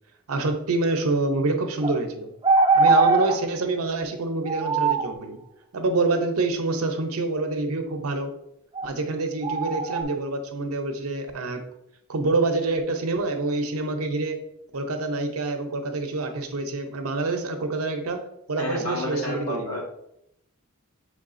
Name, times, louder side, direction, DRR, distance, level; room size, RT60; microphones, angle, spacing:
voice 1, 0.3-2.3 2.7-5.4 5.7-8.3 8.8-11.6 12.1-14.4 14.7-19.8, right 3 dB, 80° right, 6 dB, 0.6 m, -26 dB
sound 1, 1.8-2.0 2.4-3.4 4.5-5.1 8.7-8.9 9.4-10.0, right 3 dB, 20° right, 0.4 m, -20 dB
voice 2, 18.6-20.0, left 1 dB, 85° left, -2 dB, 1.4 m, -31 dB
5.4 x 3.5 x 2.5 m, 0.77 s
head